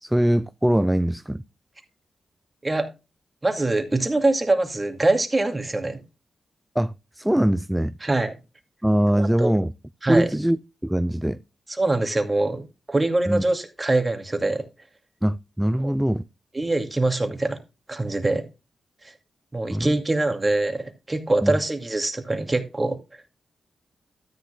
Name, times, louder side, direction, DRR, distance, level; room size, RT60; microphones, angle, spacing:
voice 1, 0.0-1.4 6.8-7.9 8.8-9.7 10.1-10.6 10.8-11.4 13.3-13.4 15.2-16.2 19.7-20.0 21.4-21.6, equal, 5° right, 0.4 m, -22 dB
voice 2, 3.4-6.0 8.0-8.4 9.1-9.5 10.0-10.3 11.7-14.7 15.8-15.9 16.5-17.6 17.9-18.5 19.0-19.1 19.5-23.3, right 2 dB, 25° right, 2.3 m, -24 dB
13.0 x 9.7 x 2.3 m
cardioid pair, 55°, 0 cm